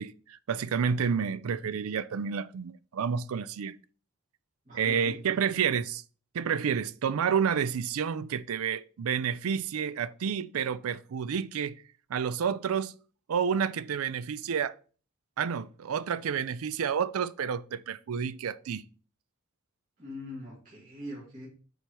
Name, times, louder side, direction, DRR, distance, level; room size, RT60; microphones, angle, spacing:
voice 1, 0.0-3.8 4.7-6.0 6.3-11.8 12.1-12.9 13.3-14.7 15.4-18.8, right 7 dB, 85° right, 0.4 m, -30 dB
voice 2, 4.7-5.2 20.0-21.5, left 1 dB, 35° right, 2.2 m, -42 dB
8.0 x 4.5 x 3.0 m
head